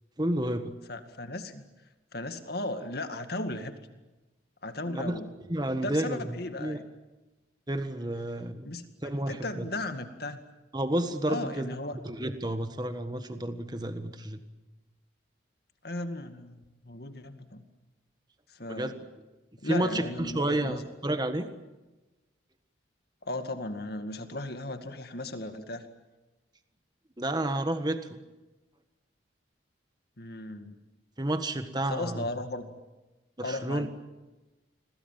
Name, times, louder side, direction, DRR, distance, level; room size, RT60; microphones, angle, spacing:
voice 1, 0.2-0.7 4.9-5.2 5.5-6.8 7.7-8.7 9.0-9.7 10.7-11.7 12.0-14.4 18.7-18.9 19.6-21.5 27.2-28.2 31.2-32.3 33.4-33.9, right 1 dB, 20° right, 8 dB, 1.5 m, -30 dB
voice 2, 0.9-1.6 2.1-3.8 4.6-5.3 5.8-6.9 8.6-10.4 11.3-12.0 15.8-17.6 18.5-18.9 19.6-20.9 23.2-25.9 30.2-30.7 31.9-32.7 33.4-33.9, left 2 dB, 55° left, 8 dB, 2.1 m, -36 dB
29.0 x 22.0 x 7.5 m, 1.1 s
head